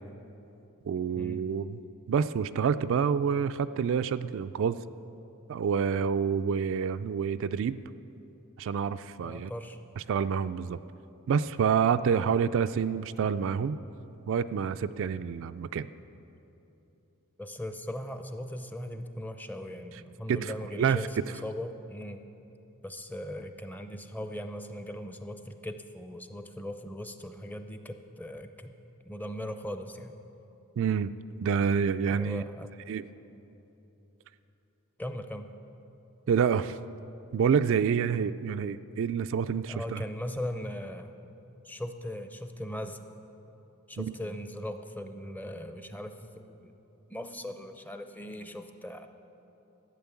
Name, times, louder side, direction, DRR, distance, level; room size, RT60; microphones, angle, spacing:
voice 1, 0.9-1.8 2.1-4.8 5.5-7.8 8.6-9.5 10.0-10.8 11.3-13.8 14.3-15.9 20.3-21.0 30.8-31.1 31.4-32.4 32.9-33.0 36.3-36.8 37.3-40.0 44.0-44.1, right 7 dB, 60° right, 12 dB, 0.3 m, -28 dB
voice 2, 9.2-9.8 12.1-12.3 17.4-22.2 22.8-28.7 29.0-30.1 32.1-32.8 35.0-35.5 39.7-41.2 41.6-43.0 43.9-46.7 47.1-49.1, left 1 dB, 10° left, 8 dB, 0.6 m, -39 dB
14.0 x 8.9 x 7.1 m, 3.0 s
head